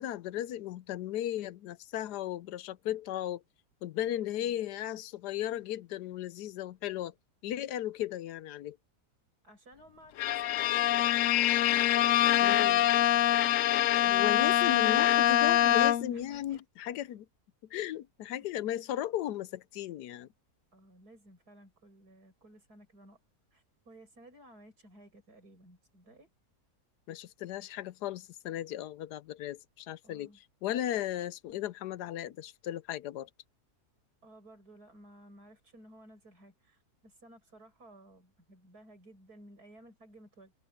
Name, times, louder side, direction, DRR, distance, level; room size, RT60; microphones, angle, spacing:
voice 1, 0.0-3.4 3.8-7.1 7.4-8.8 12.4-12.9 14.1-17.3 17.7-20.3 27.1-33.3, left 12 dB, 85° left, 1.2 m, -36 dB
voice 2, 4.0-4.6 9.4-13.2 16.1-16.6 17.1-17.2 18.4-18.5 20.7-23.2 23.5-26.3 30.0-30.4 34.2-40.5, right 1 dB, 70° right, 7.7 m, -56 dB
Bowed string instrument, 10.2-16.3, left 12 dB, 70° left, 0.8 m, -25 dB
omnidirectional pair, 1.7 m